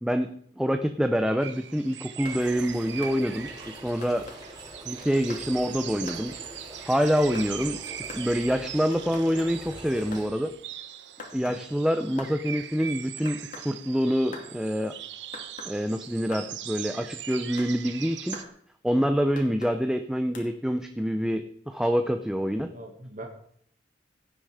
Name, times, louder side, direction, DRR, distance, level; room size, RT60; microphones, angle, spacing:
voice 1, 0.0-3.5 3.8-4.2 4.9-6.3 6.9-10.5 11.3-13.4 13.6-14.9 15.7-18.4 18.8-22.7, equal, 5° right, 6 dB, 0.6 m, -26 dB
sound 1, 1.4-18.5, right 10 dB, 70° right, 1.0 m, -41 dB
sound 2, 2.1-2.4 3.0-3.2 4.0-4.4 5.0-5.5 6.1-6.2 7.1-7.5 8.1-8.3 9.1-9.5 10.1-10.3 11.2-11.6 12.2-12.3 13.2-13.7 14.3-14.5 15.3-15.7 16.3-16.5 17.3-17.7 18.3-18.5 19.4-19.7 20.3-20.5, left 3 dB, 50° left, 2.6 m, -43 dB
sound 3, 2.2-10.3, right 1 dB, 25° right, 3.8 m, -44 dB
voice 2, 22.7-23.3, right 1 dB, 45° right, 3 dB, 1.8 m, -42 dB
17.0 x 9.2 x 4.9 m, 0.64 s
head